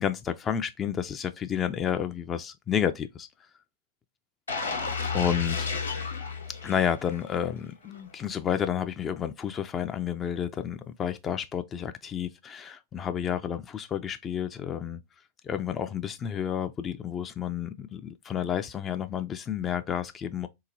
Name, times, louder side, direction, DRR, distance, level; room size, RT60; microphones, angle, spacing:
voice 1, 0.0-3.3 5.1-5.7 6.6-15.0 15.4-20.5, left 8 dB, 25° left, 0.3 m, -30 dB
sound 1, 4.5-7.4 7.8-8.0, left 5 dB, 75° left, 0.9 m, -32 dB
3.7 x 2.8 x 2.6 m
figure-of-eight pair, 90°, 0 cm